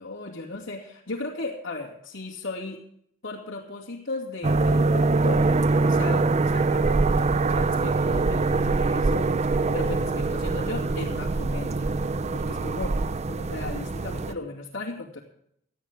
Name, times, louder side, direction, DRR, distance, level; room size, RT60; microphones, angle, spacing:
voice 1, 0.0-2.8 3.2-5.4 5.9-9.3 9.7-11.9 12.3-13.0 13.3-15.2, left 2 dB, 75° left, -6 dB, 2.6 m, -36 dB
sound 1, 4.4-14.3, right 3 dB, 35° right, 0.6 m, -23 dB
19.0 x 13.0 x 3.6 m, 0.70 s
head